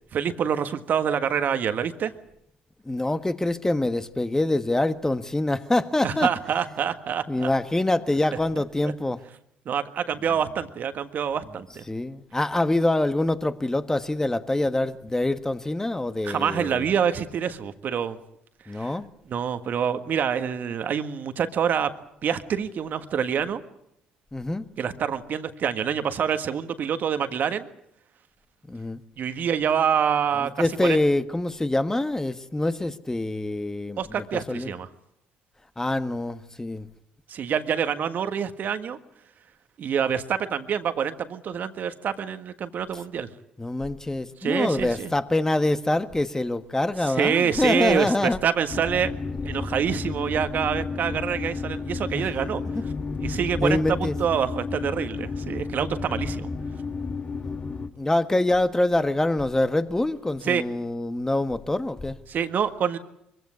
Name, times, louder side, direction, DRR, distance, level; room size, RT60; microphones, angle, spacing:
voice 1, 0.1-2.1 6.0-7.5 8.8-8.9 9.6-11.8 16.2-18.2 18.7-18.9 19.3-23.6 24.8-27.7 29.2-30.5 30.8-31.0 34.0-34.9 37.3-39.0 39.8-43.3 44.4-45.1 47.1-48.1 48.4-49.1 49.4-52.6 53.2-56.5 60.4-60.6 62.3-63.0, right 8 dB, 55° right, 1.6 m, -26 dB
voice 2, 2.8-6.3 7.3-9.2 11.9-16.9 18.7-19.1 24.3-24.6 28.7-29.0 30.4-34.0 34.3-34.7 35.8-36.9 43.6-48.4 52.1-52.3 52.7-52.8 53.6-54.2 57.9-62.2, left 2 dB, 15° left, 1.5 m, -25 dB
sound 1, 48.7-57.9, left 4 dB, 35° left, 1.7 m, -32 dB
23.5 x 16.0 x 9.6 m
hypercardioid pair, 55°, 4 cm